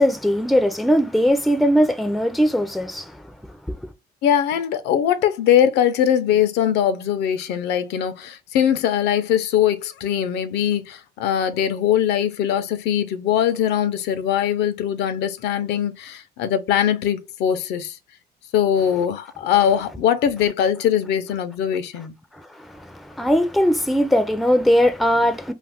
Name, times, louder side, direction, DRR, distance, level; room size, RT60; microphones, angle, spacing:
voice 1, 0.0-3.1 3.7-3.9 22.7-25.5, equal, ahead, 0.4 m, -19 dB
voice 2, 4.2-18.0 18.5-22.2, left 9 dB, 80° left, 0.5 m, -21 dB
2.5 x 2.4 x 3.4 m
cardioid pair, 110°, 17 cm